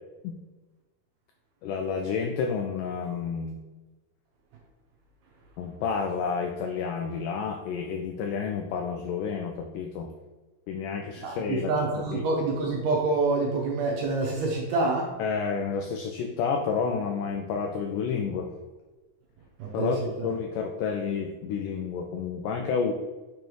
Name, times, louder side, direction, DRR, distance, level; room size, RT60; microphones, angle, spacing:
voice 1, 1.6-3.6 5.6-10.1 10.7-11.7 12.0-12.3 15.2-18.5 19.7-22.9, left 6 dB, 85° left, 3 dB, 1.9 m, -30 dB
voice 2, 11.2-15.1 19.6-19.9 20.2-20.3, right 3 dB, 75° right, 0 dB, 2.0 m, -27 dB
6.8 x 5.1 x 3.1 m, 1.2 s
omnidirectional pair, 4.3 m